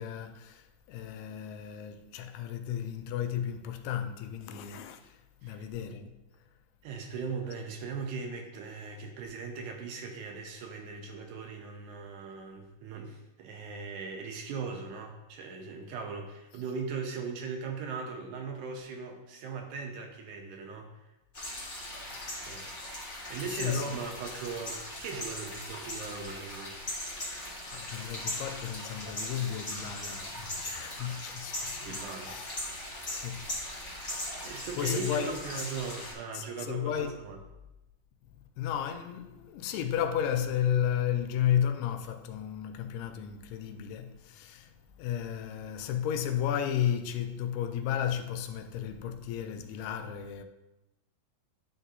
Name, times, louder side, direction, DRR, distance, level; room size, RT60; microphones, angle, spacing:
voice 1, 0.0-5.2 5.4-6.2 22.1-22.5 23.4-24.0 27.7-32.6 33.1-33.5 34.1-35.7 36.3-37.2 38.6-44.7 45.0-50.4, left 9 dB, 85° left, 2.2 m, -33 dB
voice 2, 6.8-20.9 22.5-22.6 23.3-26.8 31.8-32.4 34.4-37.4, right 5 dB, 80° right, 2.0 m, -39 dB
sound 1, 21.3-36.1, left 1 dB, 55° left, 0.5 m, -39 dB
10.0 x 3.9 x 2.7 m
omnidirectional pair, 3.8 m